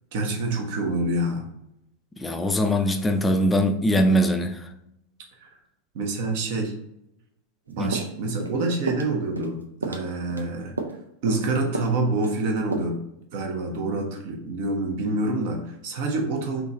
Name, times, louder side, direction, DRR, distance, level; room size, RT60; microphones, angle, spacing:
voice 1, 0.1-1.4 5.4-5.5 5.9-6.7 7.7-10.7 11.2-13.0 13.3-16.7, right 2 dB, 50° right, 2 dB, 0.9 m, -27 dB
voice 2, 2.2-4.7 7.8-8.0, equal, 10° left, 7 dB, 0.4 m, -22 dB
sound 1, 7.9-8.6 8.9-9.1 9.4-9.6 9.8-10.5 10.8-11.0 11.3-11.5 11.7-12.0 12.2-12.4 12.7-12.8, right 3 dB, 75° right, 0.5 m, -32 dB
3.8 x 3.0 x 3.7 m, 0.81 s
figure-of-eight pair, 90°, 0 cm